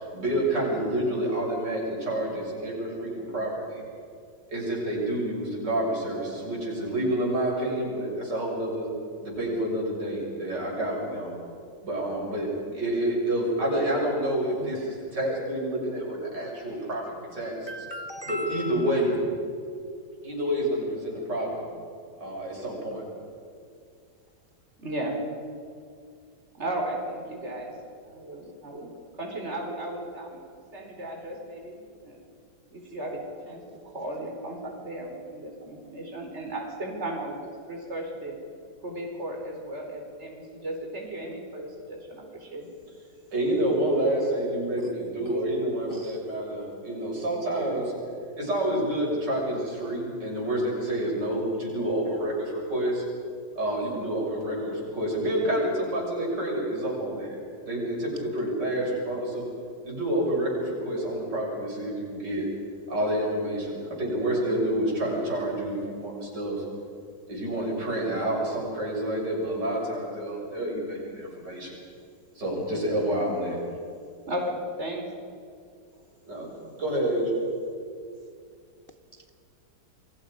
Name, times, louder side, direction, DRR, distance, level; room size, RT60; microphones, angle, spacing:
voice 1, 0.1-3.8 4.5-8.9 9.2-11.3 11.8-17.7 18.3-19.3 20.2-21.6 22.2-23.0 43.3-47.9 48.4-53.0 53.5-57.4 57.6-59.4 59.8-62.5 62.9-66.6 67.3-71.7 72.4-73.6 76.3-76.5 76.8-77.3, right 1 dB, 70° right, -3 dB, 7.5 m, -28 dB
voice 2, 17.7-18.8 44.8-44.9 45.3-45.4 45.9-46.2, left 1 dB, 45° left, 8 dB, 0.8 m, -37 dB
voice 3, 24.8-25.2 26.6-27.7 28.0-28.9 29.2-30.4 30.7-32.2 32.7-33.6 33.9-38.4 38.8-42.7 74.3-75.1, right 1 dB, 35° right, 1 dB, 4.5 m, -35 dB
29.0 x 23.5 x 5.4 m, 2.3 s
omnidirectional pair, 1.9 m